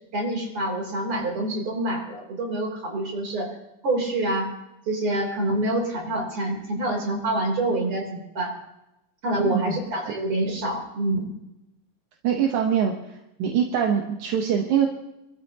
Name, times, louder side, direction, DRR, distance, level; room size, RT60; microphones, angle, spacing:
voice 1, 0.1-3.5 3.8-4.5 4.9-8.5 9.2-11.3, right 1 dB, 45° right, 0 dB, 4.3 m, -26 dB
voice 2, 9.4-9.8 12.2-14.9, right 8 dB, 75° right, 2 dB, 2.5 m, -24 dB
27.0 x 13.5 x 2.9 m, 0.92 s
omnidirectional pair, 3.6 m